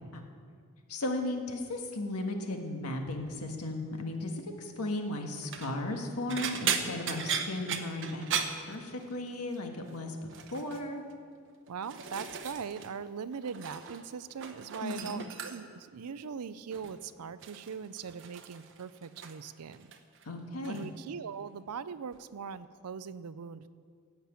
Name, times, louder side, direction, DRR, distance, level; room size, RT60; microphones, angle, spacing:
voice 1, 0.9-4.3 4.6-8.3 8.7-10.2 10.5-11.0 14.8-15.2 20.3-20.9, left 1 dB, 80° left, 3 dB, 1.6 m, -35 dB
sound 1, 5.3-5.7 6.3-9.3 9.6-10.0 10.3-10.8 11.5-12.9 13.2-14.0 14.3-15.8 16.7-17.0 17.4-19.5 19.7-20.3 20.6-20.8 22.1-22.2, right 7 dB, 55° right, 0.9 m, -37 dB
voice 2, 11.7-19.9 20.7-23.7, right 6 dB, 85° right, 15 dB, 0.5 m, -41 dB
14.5 x 5.9 x 8.8 m, 2.1 s
head